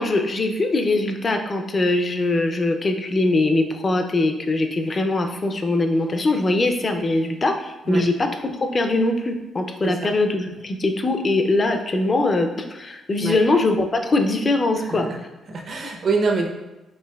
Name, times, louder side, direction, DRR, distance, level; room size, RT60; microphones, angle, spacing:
voice 1, 0.0-15.1, left 2 dB, 35° left, 5 dB, 0.4 m, -22 dB
voice 2, 9.8-10.1 13.2-13.4 14.9-15.2 15.5-16.5, right 4 dB, 50° right, 1 dB, 0.6 m, -24 dB
4.4 x 2.8 x 2.2 m, 1.0 s
cardioid pair, 90°, 0 cm